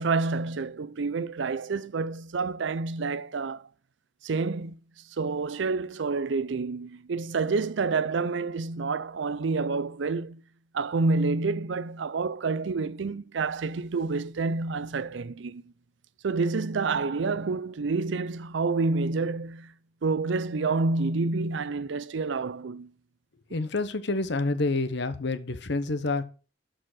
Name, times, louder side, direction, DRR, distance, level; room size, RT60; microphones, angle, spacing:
voice 1, 0.0-3.7 4.2-4.8 5.2-10.4 10.7-15.6 16.2-19.7 20.0-22.9, right 4 dB, 65° right, 0.5 m, -28 dB
voice 2, 23.5-26.2, left 3 dB, 60° left, 1.0 m, -28 dB
7.4 x 6.4 x 6.2 m
head